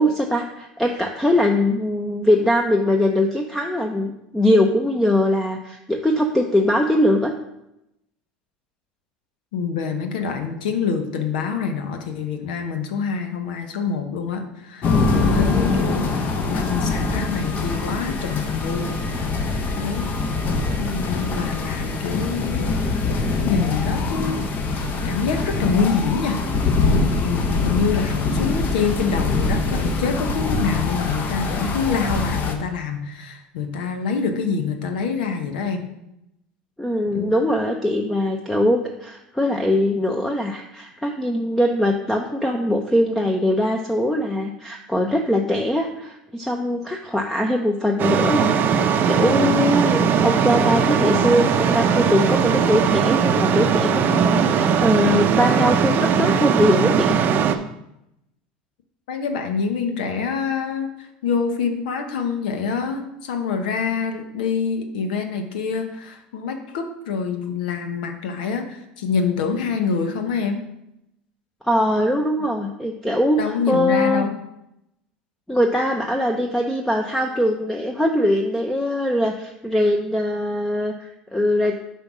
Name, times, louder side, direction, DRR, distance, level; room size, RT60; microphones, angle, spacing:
voice 1, 0.0-7.3 36.8-57.2 71.6-74.3 75.5-81.8, left 1 dB, 5° left, 2 dB, 0.7 m, -21 dB
voice 2, 9.5-19.0 19.7-20.1 20.8-22.7 23.4-24.4 24.7-26.7 26.9-35.8 37.1-37.3 59.1-70.6 73.4-74.4, left 5 dB, 75° left, 5 dB, 0.9 m, -26 dB
sound 1, 14.8-32.6, left 3 dB, 40° left, 1.0 m, -23 dB
sound 2, 48.0-57.6, right 7 dB, 45° right, 0.6 m, -19 dB
5.1 x 4.5 x 6.0 m, 0.85 s
hypercardioid pair, 85°, 5 cm